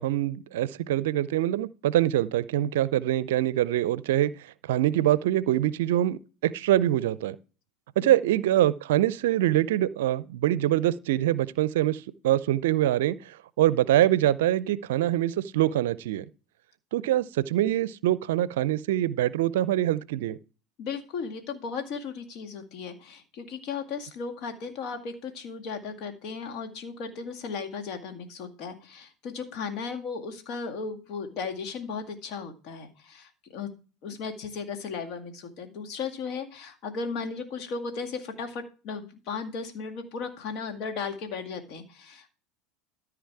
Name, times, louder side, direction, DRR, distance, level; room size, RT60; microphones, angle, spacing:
voice 1, 0.0-4.3 4.6-7.4 8.0-16.2 16.9-20.4, right 13 dB, 70° right, 0.5 m, -24 dB
voice 2, 8.0-8.4 20.8-33.7 34.0-42.4, left 5 dB, 55° left, 1.9 m, -36 dB
13.5 x 4.9 x 4.7 m
hypercardioid pair, 80°, 0 cm